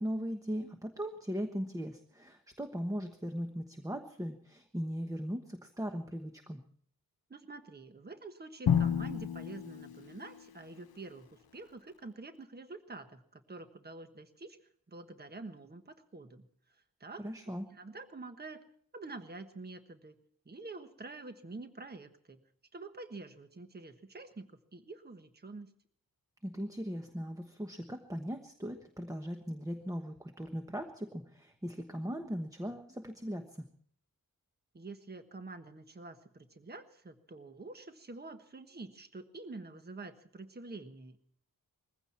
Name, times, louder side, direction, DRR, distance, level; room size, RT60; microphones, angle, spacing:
voice 1, 0.0-6.6 17.2-17.7 26.4-33.7, equal, 10° right, 6 dB, 1.2 m, -39 dB
voice 2, 7.3-14.6 14.9-16.5 17.0-18.6 18.9-20.2 20.4-22.4 22.7-25.7 34.7-41.2, right 3 dB, 25° right, 8 dB, 1.4 m, -47 dB
Drum, 8.7-10.7, left 8 dB, 80° left, 1.0 m, -31 dB
21.5 x 15.5 x 4.4 m, 0.62 s
wide cardioid pair, 165°, 36 cm